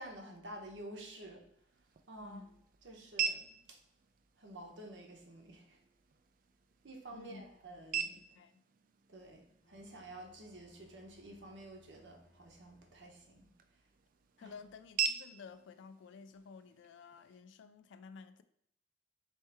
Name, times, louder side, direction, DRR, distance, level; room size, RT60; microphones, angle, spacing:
voice 1, 0.0-1.4 2.1-2.5 2.8-3.8 4.4-5.8 6.8-8.2 9.1-13.5 14.4-14.5, right 1 dB, 70° right, 0.9 m, -50 dB
sound 1, 1.4-17.4, right 7 dB, 45° right, 0.3 m, -44 dB
voice 2, 2.2-2.6 7.1-7.4 8.3-8.6 14.4-18.4, left 5 dB, 70° left, 0.3 m, -53 dB
Bowed string instrument, 9.6-13.6, equal, 40° left, 0.8 m, -68 dB
4.3 x 3.1 x 3.4 m
head